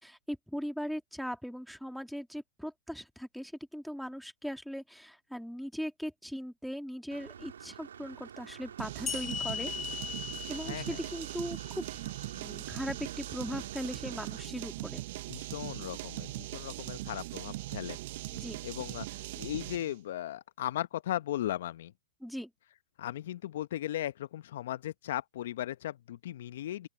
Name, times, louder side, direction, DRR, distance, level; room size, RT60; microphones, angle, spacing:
voice 1, 0.0-9.7 10.5-11.9 12.3-15.0 18.3-18.6 22.2-22.5, equal, ahead, 3.0 m, -39 dB
Engine / Mechanisms, 7.1-14.4, right 8 dB, 75° right, 2.5 m, -49 dB
sound 1, 8.8-19.9, right 18 dB, 55° right, 0.8 m, -40 dB
sound 2, 9.1-12.4, left 8 dB, 25° left, 1.9 m, -39 dB
voice 2, 10.6-11.0 15.3-18.0 18.6-21.9 23.0-26.9, left 13 dB, 65° left, 0.9 m, -37 dB
open air
hypercardioid pair, 105°, 0 cm